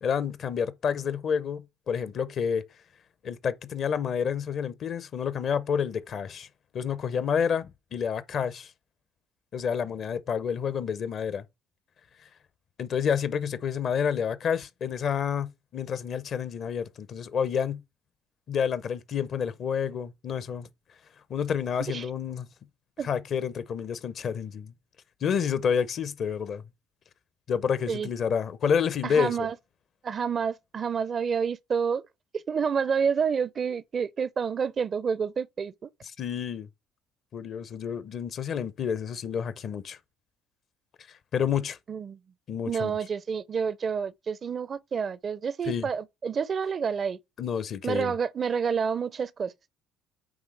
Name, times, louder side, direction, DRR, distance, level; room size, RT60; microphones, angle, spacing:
voice 1, 0.0-2.6 3.2-6.5 6.7-8.7 9.5-11.4 12.2-12.3 12.8-17.8 18.5-20.7 21.3-22.5 23.0-24.7 25.2-26.6 27.5-29.5 36.2-36.7 37.3-40.0 41.3-41.8 42.5-42.9 45.6-45.9 47.4-48.1, left 7 dB, 55° left, 0.7 m, -29 dB
voice 2, 29.0-29.5 30.0-32.0 32.3-35.9 41.9-42.2 42.7-47.2 47.8-49.7, right 6 dB, 45° right, 0.5 m, -29 dB
8.8 x 3.4 x 3.3 m
hypercardioid pair, 65°, 0 cm